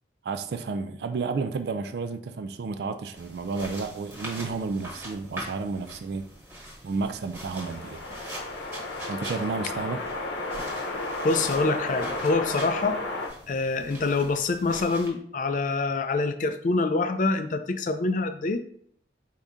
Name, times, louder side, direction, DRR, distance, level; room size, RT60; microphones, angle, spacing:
voice 1, 0.2-6.3 6.8-8.0 9.1-10.0, right 4 dB, 60° right, 0.3 m, -31 dB
sound 1, 3.1-15.1, right 1 dB, 15° right, 1.2 m, -42 dB
sound 2, 7.5-13.3, left 2 dB, 75° left, 0.8 m, -33 dB
voice 2, 11.2-13.0 13.5-18.6, left 3 dB, 45° left, 0.4 m, -26 dB
4.9 x 2.7 x 3.5 m
head